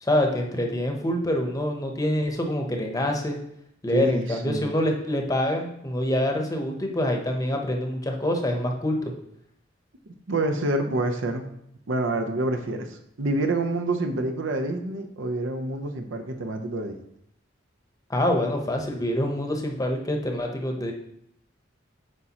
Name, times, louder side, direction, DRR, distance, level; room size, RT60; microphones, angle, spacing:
voice 1, 0.0-3.4 3.8-9.1 18.1-20.9, left 1 dB, 20° left, 2 dB, 0.8 m, -26 dB
voice 2, 3.9-4.7 10.1-11.5 11.9-17.0, right 2 dB, 80° right, 5 dB, 0.7 m, -27 dB
8.2 x 4.9 x 2.9 m, 0.76 s
head